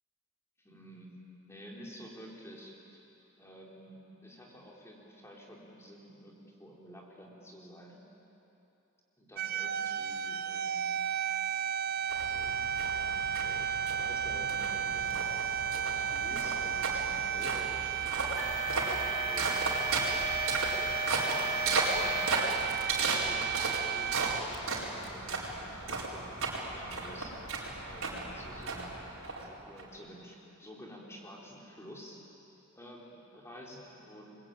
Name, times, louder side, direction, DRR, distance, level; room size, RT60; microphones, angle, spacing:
voice 1, 0.6-1.2 1.4-3.0 3.4-8.0 9.2-10.8 11.6-11.8 12.2-12.5 12.9-15.3 15.7-18.8 19.0-20.1 21.3-24.2 24.7-27.4 27.9-29.1 29.4-32.2 32.8-34.4, equal, 15° left, -3 dB, 3.9 m, -50 dB
sound 1, 9.4-24.4, right 9 dB, 50° right, 0.6 m, -33 dB
sound 2, 12.1-29.8, right 3 dB, 85° right, 4.6 m, -35 dB
sound 3, 15.2-22.6 23.0-23.3 23.9-24.0 24.7-24.8, left 2 dB, 45° left, 1.9 m, -39 dB
28.0 x 22.0 x 9.0 m, 3.0 s
head